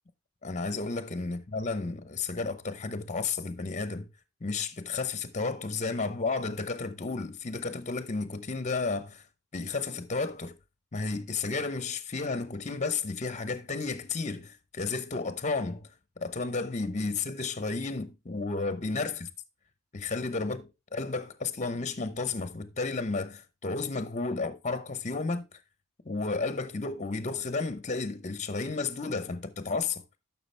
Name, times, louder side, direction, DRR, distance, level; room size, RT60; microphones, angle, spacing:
voice 1, 0.4-4.1 4.4-9.2 9.5-10.6 10.9-19.3 19.9-25.6 26.0-30.0, left 4 dB, 30° left, 0.8 m, -32 dB
11.5 x 6.0 x 3.3 m
head